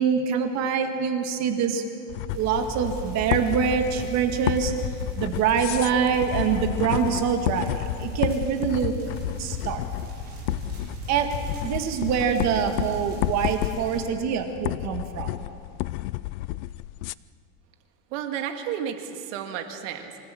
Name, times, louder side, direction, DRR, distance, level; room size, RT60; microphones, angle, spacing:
voice 1, 0.0-1.8 2.3-4.7 5.0-8.9 9.4-9.8 11.1-11.3 11.6-15.4, right 7 dB, 40° right, 6 dB, 1.8 m, -25 dB
sound 1, 2.1-17.1, left 17 dB, 80° left, 0.6 m, -31 dB
sound 2, 2.3-14.0, right 3 dB, 25° right, 5.3 m, -38 dB
voice 2, 18.1-20.2, right 9 dB, 65° right, 6 dB, 2.0 m, -32 dB
25.0 x 15.5 x 7.8 m, 2.5 s
supercardioid pair, 155°, 41 cm